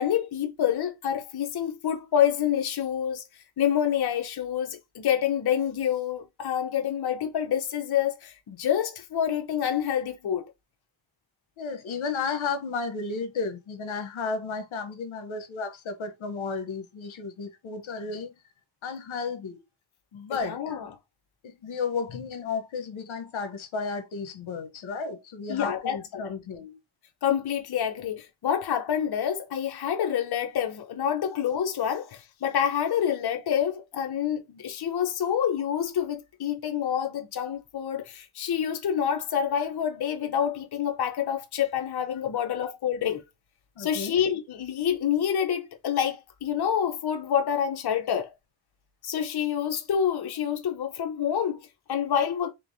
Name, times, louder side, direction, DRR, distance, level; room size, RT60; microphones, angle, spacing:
voice 1, 0.0-3.2 3.6-10.4 20.3-20.9 25.5-26.2 27.2-43.2 43.8-48.3 49.0-52.5, left 9 dB, 55° left, 0.8 m, -27 dB
voice 2, 11.6-18.3 18.8-19.6 20.1-20.8 21.4-26.8 42.6-42.7 43.8-44.2, left 4 dB, 75° left, 0.9 m, -33 dB
3.4 x 3.1 x 2.6 m
cardioid pair, 65°, 47 cm